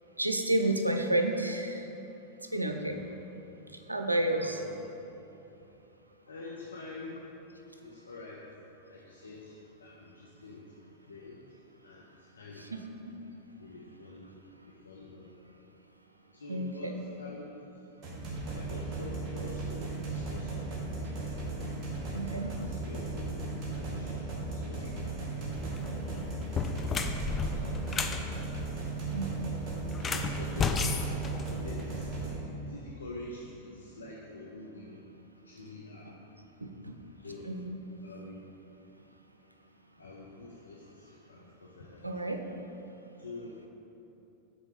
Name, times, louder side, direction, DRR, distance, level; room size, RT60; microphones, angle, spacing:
voice 1, 0.2-1.9 2.4-3.0 3.7-4.6 12.7-13.1 16.5-16.9 22.1-22.5 29.1-29.3 36.6-37.0 37.4-37.8 42.0-42.4, right 1 dB, 85° right, 4 dB, 0.5 m, -31 dB
voice 2, 2.8-3.6 4.4-4.9 5.5-5.8 6.3-7.3 7.8-8.5 8.8-11.4 11.8-12.1 12.3-12.7 13.6-14.3 14.7-15.3 16.3-17.6 18.5-20.8 21.2-21.8 22.6-25.6 26.1-26.3 26.6-27.9 28.4-28.9 30.1-31.0 31.5-35.0 35.4-36.1 37.1-37.5 38.0-38.5 40.0-42.1 43.2-43.7, left 2 dB, 75° left, -4 dB, 0.6 m, -47 dB
sound 1, 18.0-32.3, right 3 dB, 30° right, 1.4 m, -36 dB
sound 2, 25.6-25.9 26.4-28.2 29.9-32.0, left 5 dB, 20° left, 0.4 m, -32 dB
6.1 x 4.3 x 4.9 m, 2.9 s
figure-of-eight pair, 90°, 0 cm